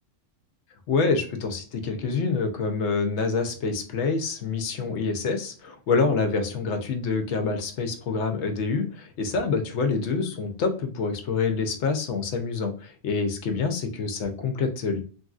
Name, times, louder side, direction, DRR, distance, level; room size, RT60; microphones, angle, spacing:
voice 1, 0.9-15.0, left 4 dB, 70° left, 6 dB, 0.8 m, -26 dB
2.9 x 2.6 x 2.3 m, 0.41 s
omnidirectional pair, 1.3 m